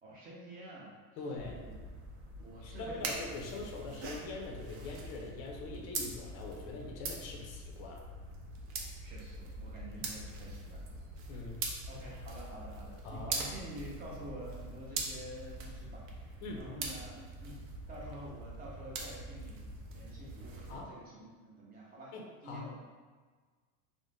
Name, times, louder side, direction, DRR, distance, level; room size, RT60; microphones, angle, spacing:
voice 1, 0.0-1.2 1.5-1.7 2.3-3.3 3.8-4.0 9.0-10.9 11.3-11.4 11.9-17.6 17.9-22.1 22.4-22.8, right 1 dB, 20° right, -4 dB, 0.5 m, -48 dB
voice 2, 1.2-1.6 2.6-8.0 11.3-11.6 13.0-13.4 16.4-16.7 20.7-20.9 22.1-22.6, left 3 dB, 40° left, -1 dB, 0.5 m, -43 dB
sound 1, 1.4-20.8, right 3 dB, 65° right, 0.6 m, -43 dB
2.5 x 2.1 x 3.2 m, 1.5 s
supercardioid pair, 140°, 43 cm